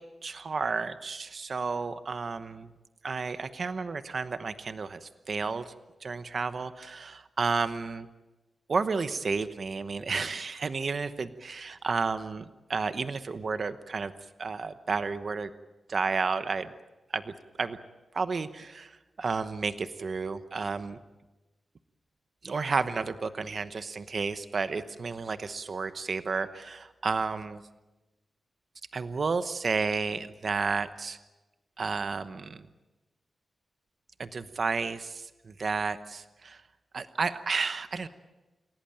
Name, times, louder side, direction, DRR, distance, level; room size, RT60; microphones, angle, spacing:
voice 1, 0.2-2.7 3.0-5.7 6.0-8.1 8.7-14.1 14.4-15.5 15.9-16.7 17.1-17.8 18.1-21.0 22.4-27.6 28.9-31.2 31.8-32.7 34.2-36.6 36.9-38.1, right 4 dB, 45° right, 11 dB, 1.0 m, -32 dB
28.5 x 17.5 x 9.2 m, 1.1 s
wide cardioid pair, 150°, 0 cm